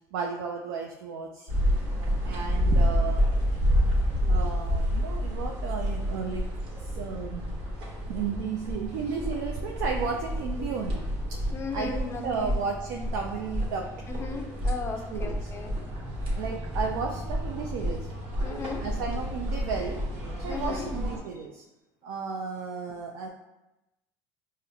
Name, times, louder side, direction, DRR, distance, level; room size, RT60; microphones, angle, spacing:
voice 1, 0.1-1.5 2.2-3.2 4.3-6.4 6.8-7.4 8.1-11.0 11.7-13.9 15.1-15.3 16.3-18.1 18.8-20.0 20.4-21.6 22.0-23.3, right 5 dB, 80° right, 1 dB, 0.4 m, -33 dB
sound 1, 1.5-21.2, equal, 60° right, 1.1 m, -29 dB
voice 2, 11.5-12.5 14.1-15.7 18.4-18.9 20.5-20.9 22.9-23.0, left 3 dB, 25° left, 4 dB, 0.5 m, -36 dB
5.0 x 2.1 x 2.3 m, 0.96 s
supercardioid pair, 90°, 10 cm